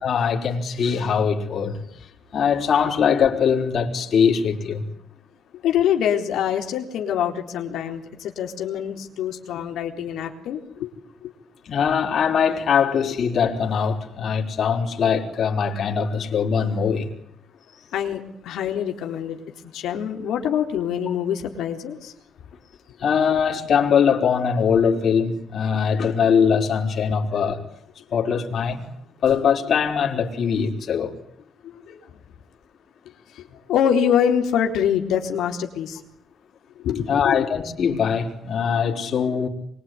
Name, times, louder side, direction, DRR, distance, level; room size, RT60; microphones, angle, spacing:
voice 1, 0.0-1.8 2.3-4.8 11.6-17.1 23.0-27.6 28.1-28.8 29.2-31.1 37.1-39.5, left 7 dB, 60° left, 4.9 m, -21 dB
voice 2, 5.6-10.9 11.2-11.3 17.9-19.4 19.7-22.1 31.6-32.0 33.3-36.0 36.8-37.4, left 9 dB, 85° left, 3.9 m, -25 dB
25.5 x 23.0 x 9.7 m
cardioid pair, 90°, 0 cm